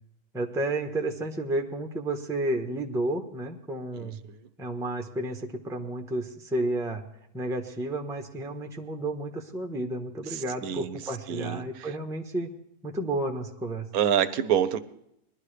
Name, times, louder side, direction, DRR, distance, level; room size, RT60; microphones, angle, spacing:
voice 1, 0.3-4.2 4.6-7.0 7.3-12.5 12.8-13.9, right 1 dB, ahead, 3 dB, 0.9 m, -31 dB
voice 2, 10.3-11.0 11.3-11.6 13.9-14.8, right 9 dB, 75° right, 12 dB, 1.1 m, -26 dB
20.5 x 11.5 x 3.3 m, 0.75 s
omnidirectional pair, 1.6 m